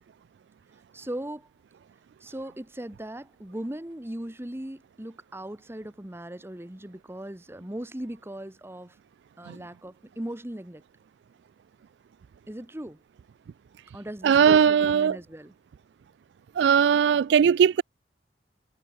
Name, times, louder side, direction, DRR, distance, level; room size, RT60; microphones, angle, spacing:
voice 1, 0.9-1.5 2.2-9.0 9.4-10.8 12.5-13.0 13.9-15.5, right 1 dB, 15° right, 1.2 m, -38 dB
voice 2, 14.2-15.2 16.6-17.8, right 7 dB, 70° right, 0.3 m, -19 dB
head